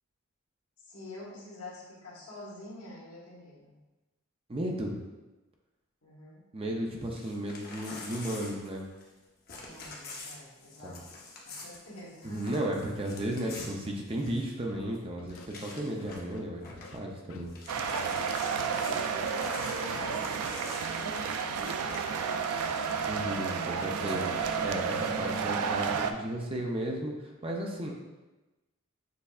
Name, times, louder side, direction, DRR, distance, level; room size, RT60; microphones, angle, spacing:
voice 1, 0.9-3.8 6.0-6.4 9.6-11.0 11.4-12.6 17.8-22.8, left 2 dB, 80° left, -6 dB, 1.4 m, -46 dB
voice 2, 4.5-5.0 6.5-8.8 10.8-11.0 12.2-17.5 23.1-27.9, right 1 dB, 25° right, 0 dB, 0.5 m, -34 dB
Crumpling crinkling / Tearing, 7.0-9.2 9.5-14.6 14.9-15.0 15.3-16.3 16.6-17.0 17.3-23.1 23.9-25.5, left 3 dB, 40° left, 0.8 m, -47 dB
Scratching (performance technique), 14.7-14.8 15.2-15.5 16.0-17.0 17.3-17.5 17.8-18.1 18.5-19.5 19.9-20.1 20.4-20.7 21.2-22.1 22.5-22.7 23.0-24.8, left 5 dB, 60° left, 0.3 m, -51 dB
sound 1, 17.7-26.1, right 6 dB, 85° right, 0.4 m, -31 dB
6.7 x 3.2 x 2.4 m, 1.1 s
head